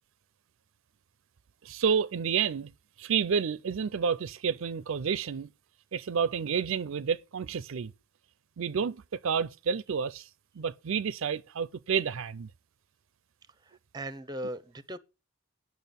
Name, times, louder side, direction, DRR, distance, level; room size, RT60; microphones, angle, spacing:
voice 1, 1.6-2.7 3.0-5.5 5.9-7.9 8.6-10.3 10.6-12.5, right 6 dB, 65° right, 0.4 m, -30 dB
voice 2, 13.6-15.0, right 1 dB, 20° right, 0.6 m, -39 dB
9.1 x 6.1 x 6.8 m
head